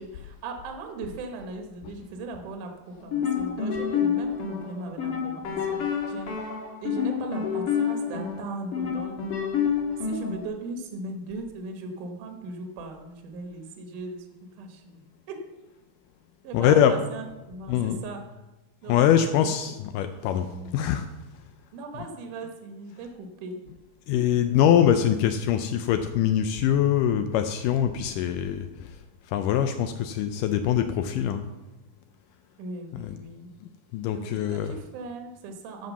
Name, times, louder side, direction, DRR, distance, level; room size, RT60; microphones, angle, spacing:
voice 1, 0.0-6.4 6.8-9.2 10.0-14.3 14.6-15.0 15.3-15.4 16.4-18.2 18.8-19.2 20.5-20.9 21.7-23.6 32.6-33.5 34.1-35.9, right 3 dB, 65° right, 4 dB, 2.4 m, -38 dB
sound 1, 3.0-10.5, left 7 dB, 50° left, 1.8 m, -28 dB
voice 2, 16.5-17.0 17.7-18.0 18.9-21.1 24.1-29.0 29.3-31.4 32.9-33.2 33.9-34.8, left 9 dB, 90° left, 8 dB, 1.8 m, -23 dB
13.0 x 5.3 x 6.9 m, 1.1 s
omnidirectional pair, 4.5 m